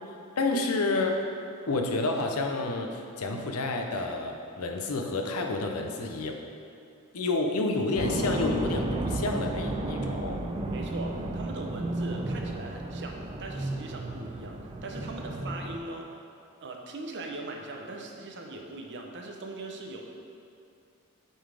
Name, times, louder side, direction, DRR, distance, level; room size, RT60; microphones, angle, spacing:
voice 1, 0.4-1.2 1.7-6.4 7.1-10.4, left 2 dB, 90° left, 3 dB, 0.7 m, -29 dB
sound 1, 8.0-15.8, right 1 dB, 25° right, 0.4 m, -33 dB
voice 2, 10.7-16.1 16.6-20.0, right 2 dB, 55° right, 2 dB, 0.7 m, -40 dB
7.8 x 4.1 x 4.9 m, 2.5 s
head